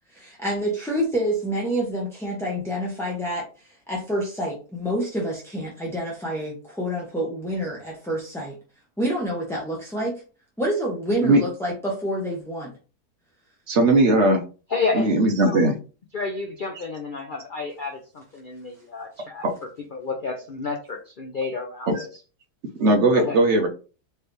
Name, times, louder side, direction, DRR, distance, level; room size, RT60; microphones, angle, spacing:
voice 1, 0.1-8.6 9.0-10.2 10.6-12.7, equal, ahead, -4 dB, 0.7 m, -28 dB
voice 2, 13.7-14.4 14.9-15.7 19.4-19.5 21.9-22.0 22.8-23.7, right 2 dB, 55° right, 4 dB, 1.0 m, -18 dB
voice 3, 14.7-15.1 15.4-15.6 16.1-22.1 23.1-23.4, left 4 dB, 60° left, 3 dB, 0.5 m, -30 dB
4.5 x 3.3 x 3.2 m, 0.35 s
omnidirectional pair, 1.7 m